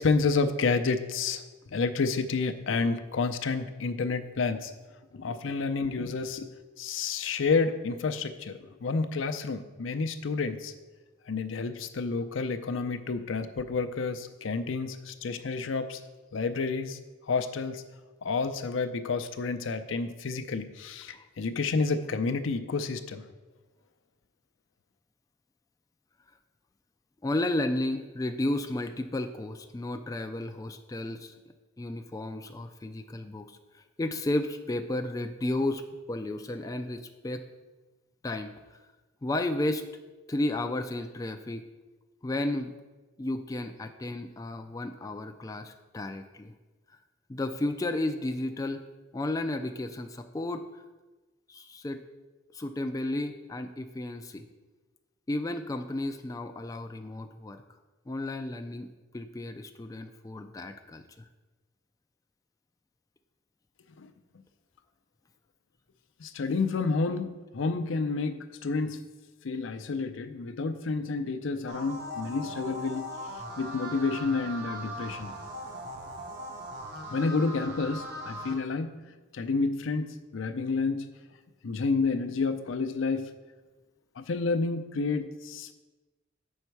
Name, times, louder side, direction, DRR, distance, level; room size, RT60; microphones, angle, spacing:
voice 1, 0.0-1.4 1.7-4.7 5.1-6.5 6.8-10.7 11.3-16.0 16.3-17.0 17.3-17.8 18.2-23.2 64.0-64.1 66.2-69.0 69.4-73.1 73.6-75.4 77.1-81.1 81.6-83.3 84.2-85.7, left 4 dB, 75° left, 9 dB, 0.5 m, -30 dB
voice 2, 27.2-31.3 31.8-35.8 36.1-37.4 38.2-38.5 39.2-39.8 40.3-41.6 42.2-42.7 43.2-46.5 47.3-48.8 49.1-50.8 51.5-52.0 52.5-54.4 55.3-57.6 58.1-58.9 59.1-61.2, left 1 dB, 15° left, 6 dB, 0.3 m, -33 dB
sound 1, 71.7-78.5, equal, 55° right, 0.9 m, -39 dB
7.8 x 5.5 x 4.6 m, 1.2 s
head